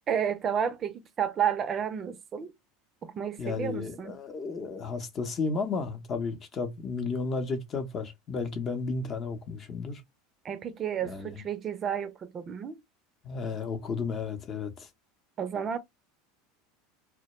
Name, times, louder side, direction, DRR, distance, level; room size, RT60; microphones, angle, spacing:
voice 1, 0.1-2.5 3.0-4.2 10.4-12.8 15.4-15.8, right 8 dB, 35° right, 0.5 m, -31 dB
voice 2, 3.4-10.0 11.0-11.4 13.2-14.9, left 4 dB, 35° left, 0.7 m, -33 dB
2.2 x 2.1 x 3.0 m
supercardioid pair, 105°, 0 cm